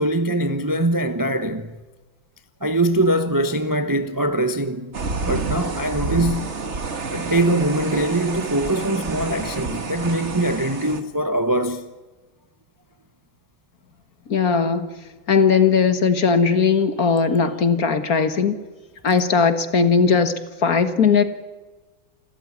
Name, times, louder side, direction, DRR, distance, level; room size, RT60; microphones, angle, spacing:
voice 1, 0.0-1.8 2.6-4.9 5.2-6.5 7.1-11.9, right 1 dB, 15° right, 0.7 m, -22 dB
sound 1, 4.9-11.0, right 4 dB, 35° right, 1.8 m, -28 dB
voice 2, 14.3-14.9 15.3-18.6 19.0-20.3 20.6-21.2, left 5 dB, 50° left, 1.8 m, -18 dB
28.5 x 13.5 x 9.7 m
omnidirectional pair, 2.1 m